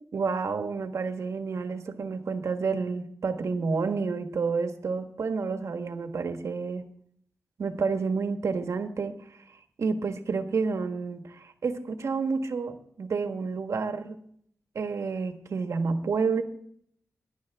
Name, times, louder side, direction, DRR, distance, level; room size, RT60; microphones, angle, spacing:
voice 1, 0.0-6.9 7.6-9.4 9.8-14.2 14.7-16.4, right 4 dB, 80° right, 7 dB, 1.4 m, -30 dB
18.0 x 11.0 x 3.6 m, 0.67 s
wide cardioid pair, 90°, 5 cm